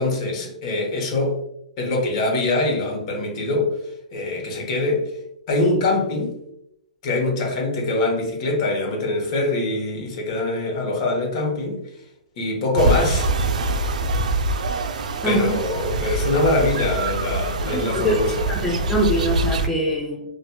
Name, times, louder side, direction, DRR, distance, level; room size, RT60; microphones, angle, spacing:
voice 1, 0.0-1.4 1.8-3.8 4.1-5.0 5.5-6.3 7.0-11.8 12.4-13.3 15.2-18.5, left 2 dB, 50° left, 0 dB, 1.1 m, -23 dB
sound 1, 12.8-19.7, right 2 dB, 80° right, 0.4 m, -24 dB
voice 2, 15.2-15.6 17.7-20.2, equal, 5° left, -2 dB, 0.5 m, -23 dB
4.3 x 2.5 x 2.3 m, 0.80 s
hypercardioid pair, 130°, 4 cm